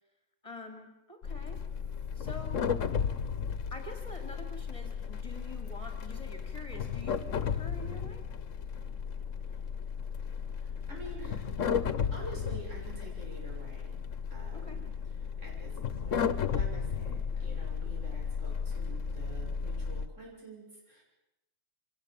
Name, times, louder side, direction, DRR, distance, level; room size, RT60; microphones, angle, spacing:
voice 1, 0.4-1.6 2.1-2.8 3.7-8.2 14.5-14.8, left 1 dB, 25° left, 4 dB, 3.2 m, -46 dB
sound 1, 1.2-20.1, left 7 dB, 90° left, 1.4 m, -34 dB
voice 2, 10.6-11.5 12.1-14.0 14.3-21.0, right 2 dB, 75° right, -3 dB, 7.5 m, -48 dB
24.0 x 18.5 x 7.4 m, 0.93 s
omnidirectional pair, 1.3 m